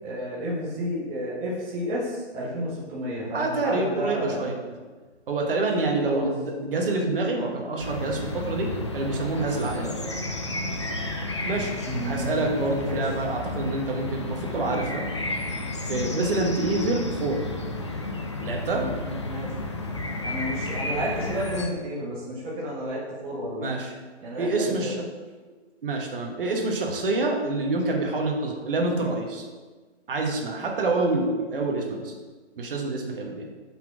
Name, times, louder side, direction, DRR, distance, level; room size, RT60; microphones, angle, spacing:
voice 1, 0.0-4.5 6.0-6.3 10.7-10.9 11.8-12.3 12.8-13.0 15.7-15.8 18.7-19.5 20.2-23.7 24.2-24.9, equal, 15° right, -7 dB, 0.9 m, -32 dB
voice 2, 3.2-4.6 5.3-10.3 11.5-11.7 12.0-15.0 15.5-17.4 18.4-18.8 23.6-23.9 24.4-25.0 25.8-29.4 30.1-32.1 32.6-33.5, right 2 dB, 50° right, 1 dB, 1.4 m, -27 dB
sound 1, 7.8-21.7, left 2 dB, 25° left, 0.4 m, -32 dB
5.7 x 4.1 x 6.0 m, 1.3 s
hypercardioid pair, 160°, 35 cm